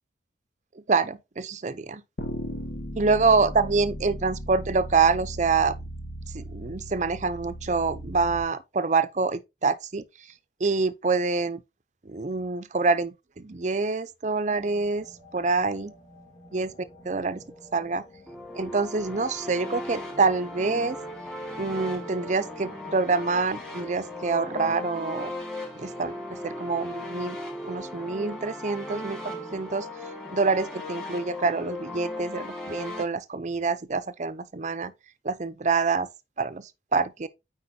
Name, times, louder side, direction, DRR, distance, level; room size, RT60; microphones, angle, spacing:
voice 1, 0.7-2.0 3.0-5.7 6.3-10.3 10.6-11.6 12.0-15.1 15.3-15.9 16.5-16.7 17.0-17.4 17.7-18.0 18.5-21.0 21.6-25.3 25.7-27.4 27.6-29.9 30.3-34.9 35.2-36.1 36.4-37.3, right 4 dB, 40° right, 0.6 m, -26 dB
sound 1, 2.2-8.4, equal, 60° left, 1.7 m, -37 dB
sound 2, 14.6-24.2, left 1 dB, 25° left, 1.8 m, -51 dB
sound 3, 18.3-33.0, left 1 dB, 5° left, 1.7 m, -37 dB
8.6 x 4.8 x 2.7 m
head